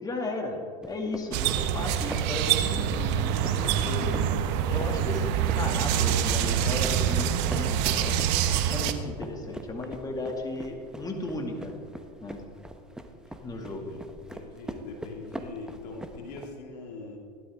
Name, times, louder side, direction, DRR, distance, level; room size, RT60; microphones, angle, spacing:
voice 1, 0.0-0.6 0.9-4.2 4.6-8.3 8.7-11.7 12.2-12.4 13.4-13.9, left 2 dB, 15° left, 2 dB, 2.3 m, -35 dB
sound 1, 0.8-16.5, right 1 dB, 5° right, 1.1 m, -42 dB
sound 2, 1.3-8.9, right 9 dB, 55° right, 1.1 m, -26 dB
voice 2, 13.7-14.1 14.3-17.2, left 3 dB, 70° left, 1 dB, 2.4 m, -42 dB
17.0 x 12.0 x 3.6 m, 2.1 s
hypercardioid pair, 90°, 21 cm